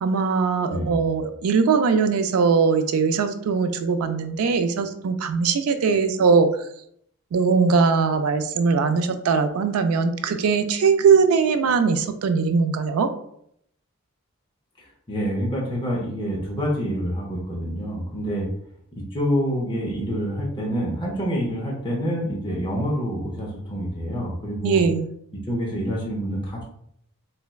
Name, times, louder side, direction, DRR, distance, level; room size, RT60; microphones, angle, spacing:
voice 1, 0.0-6.5 7.3-13.1 24.6-25.1, right 5 dB, 80° right, 8 dB, 0.4 m, -20 dB
voice 2, 0.7-1.1 15.1-18.5 18.9-24.8 25.3-26.6, equal, 20° left, -3 dB, 0.6 m, -27 dB
4.0 x 2.1 x 2.2 m, 0.69 s
head